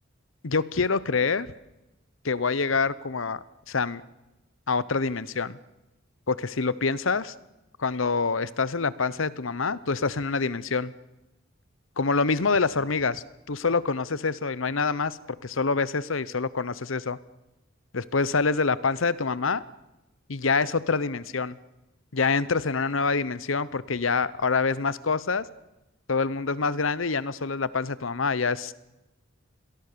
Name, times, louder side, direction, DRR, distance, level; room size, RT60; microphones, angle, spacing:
voice 1, 0.4-1.5 2.2-3.4 3.7-4.0 4.7-5.6 6.3-7.3 7.8-10.9 12.0-15.2 15.4-17.2 17.9-19.6 20.3-21.6 22.1-25.4 26.1-28.7, left 4 dB, 75° left, 18 dB, 1.0 m, -26 dB
28.0 x 22.5 x 6.9 m, 0.98 s
head